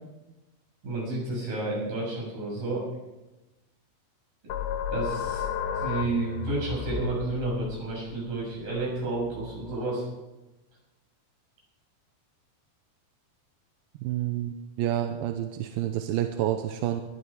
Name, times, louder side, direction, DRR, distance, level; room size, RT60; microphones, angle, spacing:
voice 1, 0.8-2.9 4.4-4.5 4.9-5.5 5.8-10.0, right 2 dB, 60° right, -4 dB, 8.4 m, -31 dB
sound 1, 4.5-9.8, left 6 dB, 80° left, 3.0 m, -34 dB
voice 2, 14.0-17.0, right 12 dB, 85° right, 6 dB, 2.6 m, -29 dB
21.0 x 11.5 x 4.9 m, 1.0 s
omnidirectional pair, 4.3 m